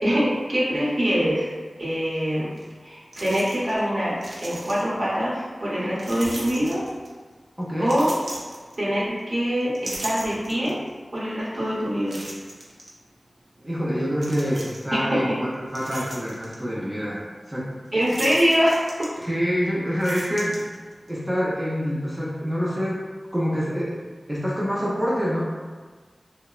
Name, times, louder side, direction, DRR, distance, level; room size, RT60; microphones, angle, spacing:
voice 1, 0.0-1.5 1.8-2.5 2.8-4.2 4.4-6.8 7.8-8.2 8.8-10.8 11.1-12.2 14.9-15.4 17.9-19.1, equal, 60° right, -7 dB, 0.9 m, -24 dB
sound 1, 2.6-2.7 3.1-3.8 4.1-5.1 6.0-7.2 7.8-9.2 9.6-10.9 11.4-11.5 12.1-12.9 14.1-15.0 15.5-16.6 18.0-19.5 19.8-21.1, right 1 dB, 80° right, 0.4 m, -38 dB
voice 2, 7.6-8.0 13.6-17.7 19.2-20.6 21.1-23.0 23.3-24.0 24.3-25.4, equal, 15° right, -7 dB, 0.5 m, -26 dB
2.8 x 2.1 x 2.3 m, 1.4 s
cardioid pair, 45°, 0 cm